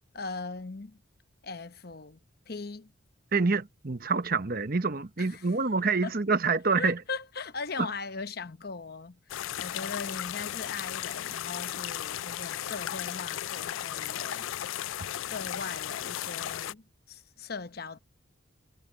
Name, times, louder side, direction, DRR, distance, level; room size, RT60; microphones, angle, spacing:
voice 1, 0.1-1.0 1.4-2.2 2.5-2.9 5.2-5.5 6.0-6.1 6.8-14.5 15.3-18.0, left 4 dB, 50° left, 0.9 m, -39 dB
voice 2, 3.3-7.0, right 4 dB, 45° right, 1.0 m, -27 dB
sound 1, 9.3-16.7, left 12 dB, 75° left, 0.3 m, -35 dB
head